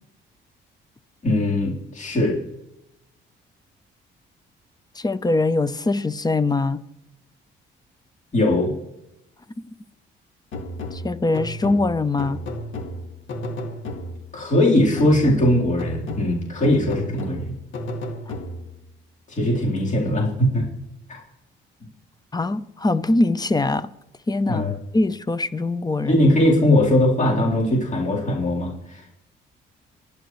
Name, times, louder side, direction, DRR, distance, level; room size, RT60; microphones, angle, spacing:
voice 1, 1.2-2.4 8.3-8.7 14.3-17.5 19.3-20.7 21.1-21.2 24.5-24.7 26.1-29.1, left 1 dB, 40° left, 4.0 m, -20 dB
voice 2, 5.0-6.8 9.6-9.7 10.9-12.4 22.3-23.9 24.3-24.6 24.9-26.2, left 2 dB, 20° left, 0.7 m, -22 dB
sound 1, 10.5-14.4 15.0-18.8, left 1 dB, 75° left, 2.2 m, -33 dB
27.5 x 10.5 x 3.2 m
cardioid pair, 90°, 20 cm